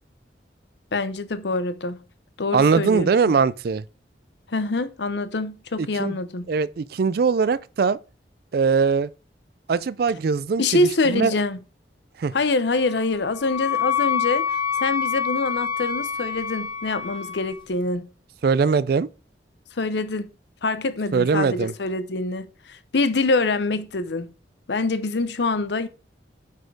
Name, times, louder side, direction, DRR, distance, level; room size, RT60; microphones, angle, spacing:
voice 1, 0.9-2.0 2.4-3.1 4.5-6.5 10.6-11.6 12.3-18.0 19.8-20.3 20.6-24.3 24.7-25.9, left 3 dB, 70° left, 0.7 m, -25 dB
voice 2, 2.5-3.8 5.8-6.2 6.5-8.0 8.5-9.1 9.7-11.3 12.2-12.3 18.4-19.1 21.1-21.7, right 5 dB, 55° right, 0.3 m, -21 dB
Wind instrument woodwind instrument, 12.8-17.6, left 8 dB, 25° left, 1.4 m, -27 dB
9.4 x 4.3 x 4.7 m
head